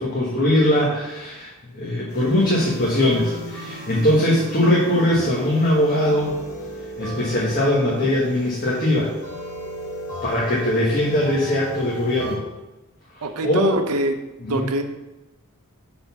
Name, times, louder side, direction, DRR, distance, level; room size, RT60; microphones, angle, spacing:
voice 1, 0.0-6.3 7.0-9.1 10.2-12.4 13.1-13.7 14.4-14.7, left 1 dB, 40° left, -5 dB, 1.3 m, -21 dB
sound 1, 2.1-12.4, equal, 65° left, 2.5 m, -35 dB
voice 2, 13.2-14.2 14.5-14.8, right 2 dB, 85° right, 7 dB, 0.6 m, -23 dB
6.4 x 4.0 x 5.6 m, 1.1 s
head